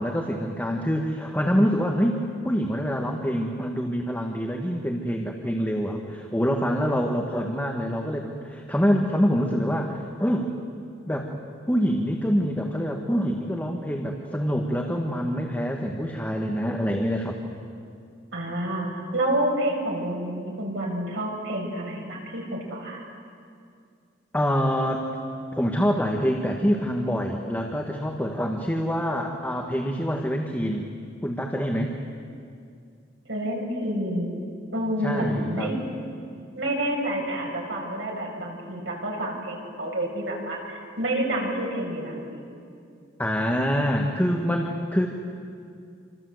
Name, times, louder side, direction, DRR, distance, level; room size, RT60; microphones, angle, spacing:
voice 1, 0.0-10.5 11.1-11.3 11.7-17.3 24.3-25.0 25.5-30.9 31.2-31.9 35.0-35.7 43.2-45.1, equal, 10° left, 1 dB, 1.7 m, -25 dB
voice 2, 18.3-23.0 33.3-34.3 34.7-35.8 36.5-42.5, right 1 dB, 75° right, -1 dB, 6.5 m, -29 dB
27.5 x 26.0 x 8.0 m, 2.3 s
head